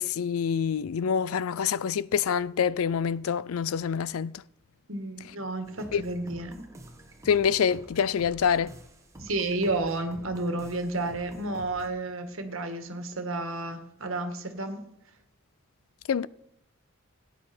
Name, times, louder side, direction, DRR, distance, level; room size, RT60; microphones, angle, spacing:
voice 1, 0.0-4.4 5.9-6.0 7.3-8.8 16.1-16.3, left 7 dB, 80° left, 0.4 m, -26 dB
voice 2, 4.9-6.7 9.2-14.8, right 2 dB, 70° right, 1.7 m, -31 dB
sound 1, 5.6-11.9, right 1 dB, 15° right, 1.6 m, -49 dB
18.0 x 9.8 x 4.4 m
head